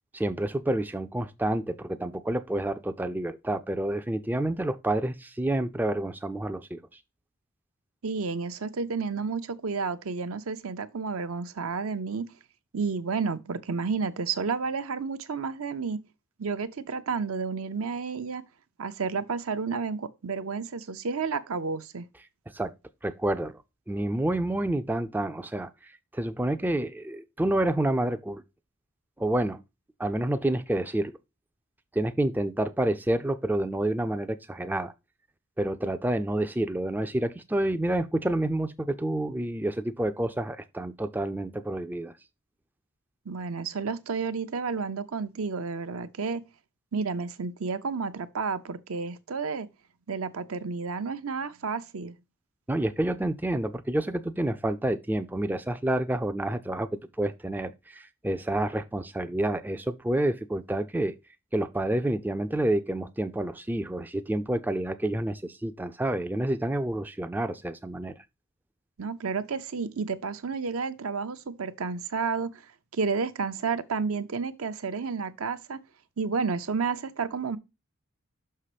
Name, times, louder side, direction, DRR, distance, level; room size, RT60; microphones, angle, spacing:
voice 1, 0.1-7.0 22.5-22.7 23.0-23.6 23.9-28.4 29.2-29.6 30.0-31.1 31.9-34.9 35.6-42.1 52.7-56.9 57.2-61.1 61.5-68.1, right 1 dB, 10° right, 0.3 m, -29 dB
voice 2, 8.0-12.3 12.7-16.0 16.4-18.4 18.8-22.1 43.3-46.4 46.9-49.7 50.1-52.2 69.0-72.7 72.9-75.8 76.2-77.6, right 5 dB, 70° right, 0.6 m, -31 dB
6.0 x 5.6 x 4.9 m
head